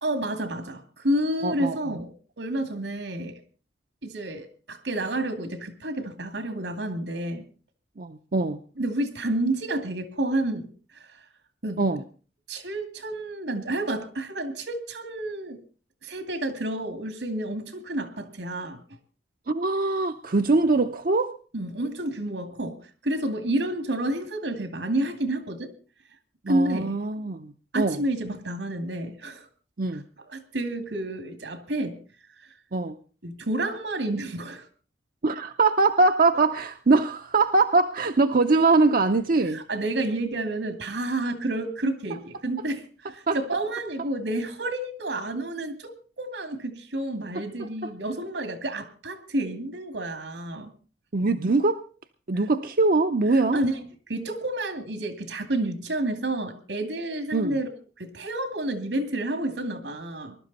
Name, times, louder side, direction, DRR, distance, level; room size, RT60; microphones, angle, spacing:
voice 1, 0.0-3.4 4.0-7.4 8.8-10.7 11.0-11.1 11.6-11.8 12.5-15.6 16.0-18.8 21.5-22.8 23.0-25.7 26.5-26.9 27.7-29.5 30.3-32.0 33.2-34.7 39.5-50.7 53.5-53.8 54.1-57.7 58.0-60.4, right 1 dB, 85° right, 2.4 m, -30 dB
voice 2, 1.4-1.9 8.0-8.6 11.8-12.0 19.5-21.4 26.4-28.0 29.8-30.0 32.7-32.9 35.2-39.6 42.1-42.2 43.3-43.4 47.6-47.9 51.1-51.8 52.3-53.6 57.3-57.6, right 3 dB, 55° right, 0.7 m, -22 dB
20.5 x 12.0 x 4.1 m
head